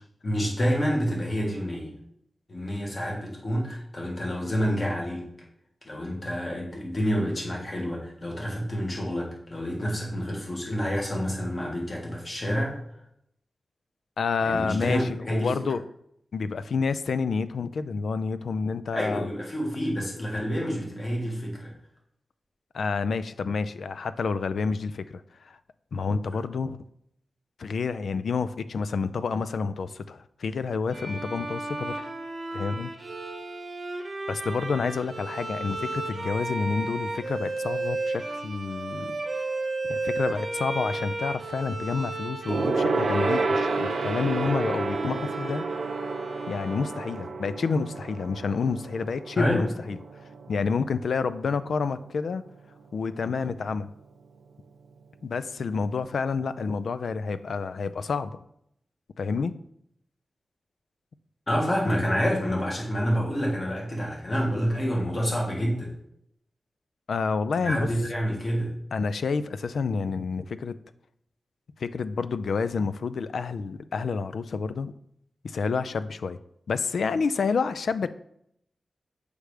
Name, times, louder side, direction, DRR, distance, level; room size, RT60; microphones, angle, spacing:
voice 1, 0.2-1.9 2.5-5.3 5.8-12.8 14.4-15.7 18.9-21.7 49.3-49.7 61.5-65.9 67.5-68.7, equal, 35° left, -2 dB, 1.7 m, -28 dB
voice 2, 14.2-15.8 16.3-19.3 22.7-25.6 25.9-26.8 27.6-32.0 32.5-32.9 34.3-39.5 39.8-45.7 46.5-50.0 50.5-52.4 52.9-53.9 55.2-58.4 59.2-59.5 67.1-67.9 68.9-70.8 71.8-74.9 75.4-76.4 76.7-78.1, left 5 dB, 75° left, 13 dB, 0.3 m, -29 dB
Bowed string instrument, 30.9-47.5, right 2 dB, 45° right, 0.8 m, -34 dB
Gong, 42.5-52.3 52.6-52.8 53.1-53.2, right 3 dB, 75° right, 0.7 m, -30 dB
6.3 x 3.4 x 4.9 m, 0.74 s
wide cardioid pair, 130°, 0 cm